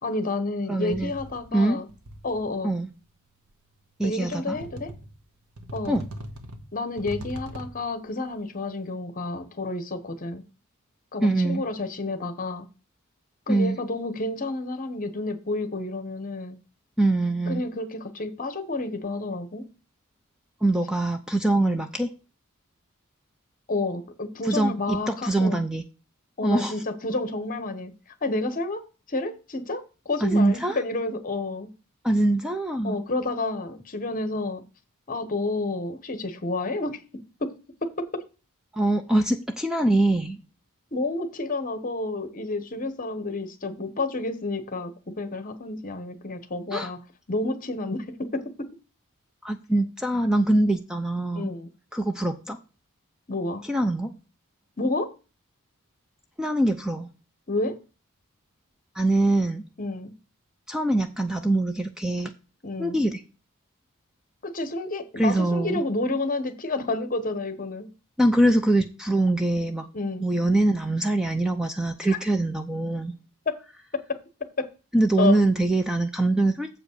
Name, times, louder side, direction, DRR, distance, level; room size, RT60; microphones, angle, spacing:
voice 1, 0.0-1.9 2.2-2.7 4.0-4.9 5.7-6.0 6.7-10.4 11.1-12.7 13.5-16.6 17.5-19.7 21.6-21.8 23.7-25.6 26.4-27.9 28.2-31.7 32.8-34.6 35.1-37.5 37.8-38.2 40.9-47.0 47.3-48.7 51.3-51.7 53.3-53.6 54.8-55.1 57.5-57.8 59.8-60.1 62.6-63.0 64.4-67.9 69.9-70.2 72.0-72.2 73.5-73.6 73.9-74.7 75.2-75.4, left 2 dB, 40° left, 1.1 m, -30 dB
voice 2, 0.7-1.1 1.5-1.8 2.6-2.9 4.0-4.6 5.9-6.0 11.2-11.6 13.5-13.8 17.0-17.6 20.6-22.1 24.4-25.8 26.4-26.7 30.2-30.8 32.0-33.0 38.7-40.4 46.7-46.9 49.4-51.5 51.9-52.6 53.7-54.2 56.4-57.1 59.0-59.7 60.7-62.3 62.8-63.2 65.2-65.8 68.2-69.9 70.2-73.1 74.9-76.7, right 1 dB, 5° right, 0.5 m, -23 dB
sound 1, 0.9-1.6 1.9-2.6 3.5-3.6 4.5-5.2 5.6-7.9, right 1 dB, 85° right, 1.3 m, -40 dB
7.4 x 5.1 x 6.6 m
head